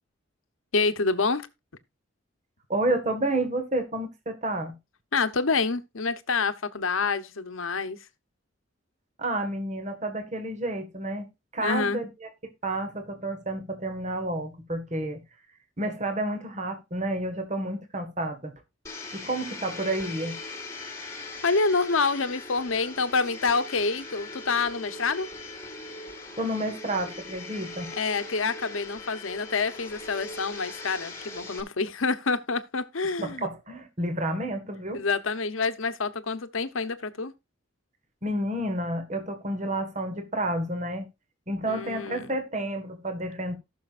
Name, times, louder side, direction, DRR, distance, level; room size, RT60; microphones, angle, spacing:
voice 1, 0.7-1.5 5.1-8.0 11.6-12.0 21.0-25.3 28.0-33.5 34.9-37.3 41.7-42.3, left 4 dB, 80° left, 0.9 m, -27 dB
voice 2, 2.7-4.7 9.2-11.3 11.5-12.3 12.6-15.2 15.8-18.5 19.1-20.4 26.4-27.9 33.2-35.0 38.2-41.1 41.5-43.5, right 1 dB, 35° right, 1.7 m, -30 dB
Domestic sounds home sounds, 18.8-31.6, left 2 dB, 15° left, 1.9 m, -40 dB
18.0 x 6.4 x 2.5 m
head